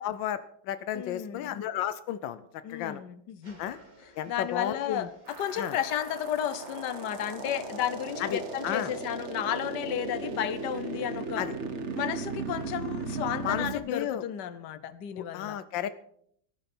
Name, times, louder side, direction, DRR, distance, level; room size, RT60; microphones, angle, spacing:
voice 1, 0.0-3.0 3.6-3.8 4.2-5.1 5.6-5.8 8.2-8.9 11.4-11.5 13.4-14.2 15.2-15.9, left 10 dB, 85° left, 13 dB, 1.4 m, -33 dB
voice 2, 0.9-1.6 2.6-3.6 4.3-11.4 11.9-15.6, left 10 dB, 70° left, 14 dB, 1.5 m, -33 dB
sound 1, 3.4-8.8, equal, 25° right, 2.7 m, -56 dB
sound 2, 5.3-13.8, right 4 dB, 40° right, 1.5 m, -37 dB
17.0 x 13.5 x 4.4 m, 0.67 s
omnidirectional pair, 2.0 m